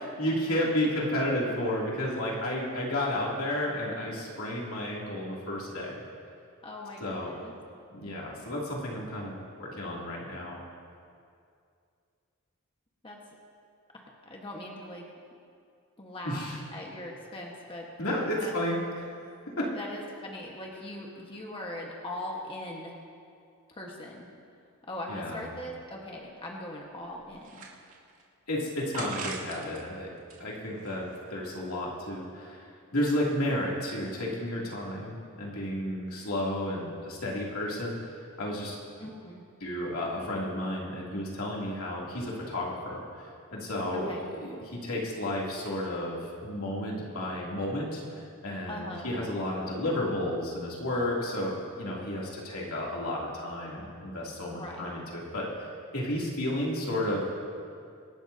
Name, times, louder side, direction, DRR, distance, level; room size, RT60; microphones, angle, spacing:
voice 1, 0.2-6.0 7.0-7.3 7.9-10.6 16.2-16.6 18.0-19.1 19.6-19.7 25.1-25.4 28.5-30.1 30.4-38.8 39.6-57.3, left 1 dB, 85° left, -4 dB, 2.9 m, -32 dB
voice 2, 6.6-7.5 13.0-13.2 13.9-15.1 16.0-16.4 16.7-17.9 18.4-18.5 19.7-23.0 23.7-24.3 24.9-27.6 39.0-39.4 43.9-44.3 48.7-49.1 54.5-54.9, left 1 dB, 25° left, -1 dB, 1.4 m, -40 dB
sound 1, 26.2-26.3 26.9-28.2 28.9-29.8 30.2-31.4, right 4 dB, 70° right, 2.4 m, -41 dB
25.5 x 12.0 x 2.8 m, 2.4 s
head